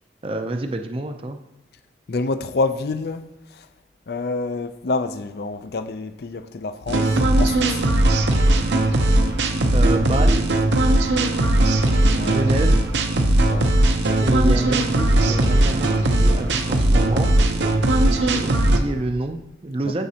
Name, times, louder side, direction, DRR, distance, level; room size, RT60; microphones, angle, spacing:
voice 1, 0.2-1.4 9.7-10.5 12.3-12.8 14.2-17.3 18.0-20.1, right 2 dB, 30° right, 0.5 m, -27 dB
voice 2, 2.1-3.2 4.1-7.8 12.2-12.5 13.5-13.8, left 3 dB, 60° left, 0.5 m, -27 dB
sound 1, 6.9-18.8, right 1 dB, 75° right, 0.8 m, -18 dB
14.5 x 5.1 x 2.8 m
head